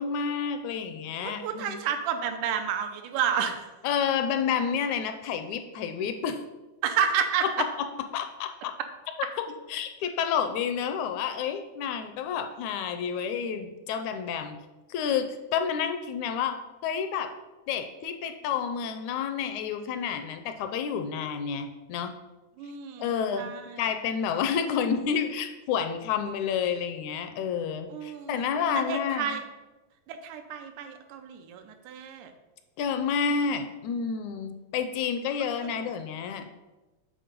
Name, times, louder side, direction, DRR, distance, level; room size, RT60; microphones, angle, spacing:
voice 1, 0.0-1.8 3.8-6.4 7.6-7.7 8.1-8.7 9.7-14.6 14.9-17.3 17.7-22.1 23.0-23.5 23.8-29.4 32.8-36.5, left 7 dB, 80° left, 7 dB, 1.8 m, -29 dB
voice 2, 1.2-3.7 6.8-7.5 22.6-23.1 23.4-23.8 27.9-28.5 28.7-29.4 30.1-32.3 35.6-35.7, right 7 dB, 85° right, 6 dB, 2.2 m, -30 dB
7.7 x 4.0 x 5.1 m, 1.1 s
omnidirectional pair, 3.5 m